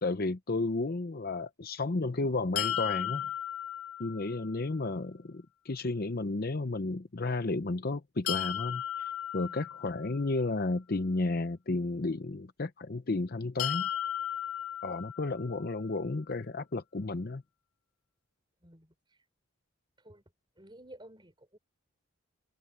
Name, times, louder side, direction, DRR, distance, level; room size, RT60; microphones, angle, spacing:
voice 1, 0.0-3.3 4.0-13.9 14.8-17.4, left 3 dB, 45° left, 0.7 m, -32 dB
sound 1, 2.6-4.5 8.3-10.3 13.6-15.6, left 11 dB, 90° left, 0.9 m, -35 dB
voice 2, 9.4-9.8 18.6-19.2 20.0-20.2 20.6-21.6, right 1 dB, 20° right, 4.6 m, -54 dB
head